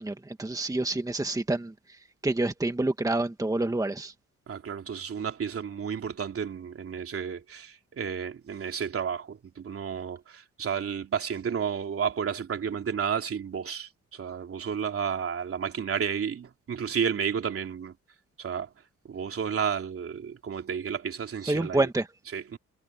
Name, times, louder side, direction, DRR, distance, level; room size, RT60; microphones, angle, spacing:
voice 1, 0.0-1.7 2.2-4.1 21.5-22.1, right 2 dB, 10° right, 1.6 m, -27 dB
voice 2, 4.5-17.9 18.4-18.7 19.0-21.9 22.3-22.6, right 7 dB, 50° right, 3.1 m, -32 dB
cardioid pair, 90°, 30 cm